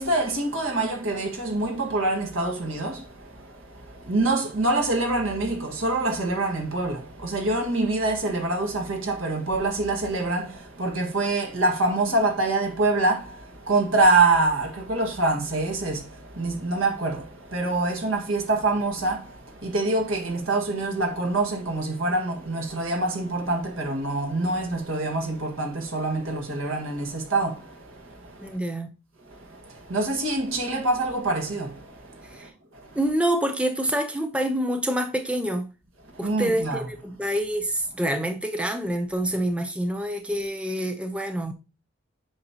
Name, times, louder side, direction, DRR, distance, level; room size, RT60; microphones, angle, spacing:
voice 1, 0.0-28.6 29.3-33.0 36.1-36.8, right 2 dB, 90° right, 1.8 m, -26 dB
voice 2, 28.4-29.0 32.3-32.5 33.0-35.7 36.2-41.5, right 1 dB, 5° right, 0.5 m, -27 dB
8.0 x 5.4 x 2.8 m
head